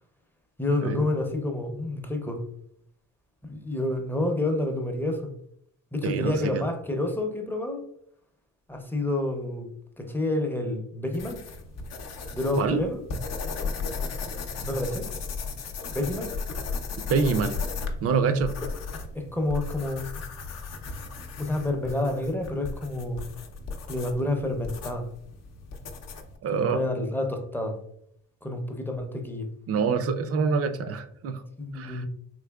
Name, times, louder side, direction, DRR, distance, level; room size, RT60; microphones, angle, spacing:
voice 1, 0.6-2.4 3.4-5.3 5.9-7.8 8.7-9.7 10.0-11.4 12.3-13.0 14.6-15.1 15.9-16.3 18.6-18.7 19.1-20.1 21.4-23.2 23.9-25.1 26.5-27.8 28.4-29.5 31.6-32.1, left 2 dB, 5° left, 4 dB, 0.5 m, -29 dB
voice 2, 6.0-6.6 12.6-12.8 17.1-17.6 18.0-18.5 26.4-26.8 29.7-31.4 31.7-32.1, right 5 dB, 50° right, 10 dB, 0.5 m, -26 dB
sound 1, 11.1-26.4, left 4 dB, 60° left, 0.6 m, -36 dB
3.8 x 2.8 x 2.2 m, 0.70 s
cardioid pair, 90°, 30 cm